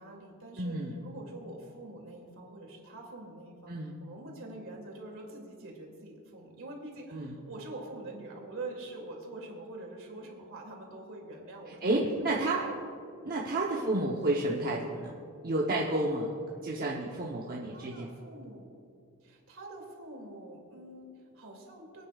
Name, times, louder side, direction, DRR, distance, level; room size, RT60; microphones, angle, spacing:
voice 1, 0.0-12.9 13.7-14.1 17.7-18.7 19.2-22.1, right 2 dB, 65° right, 0 dB, 2.5 m, -45 dB
voice 2, 0.6-0.9 3.7-4.0 7.1-7.4 11.7-12.6 13.2-15.1 15.4-16.3 16.6-18.1, right 2 dB, 40° right, -3 dB, 0.9 m, -31 dB
24.0 x 9.4 x 2.4 m, 2.5 s
head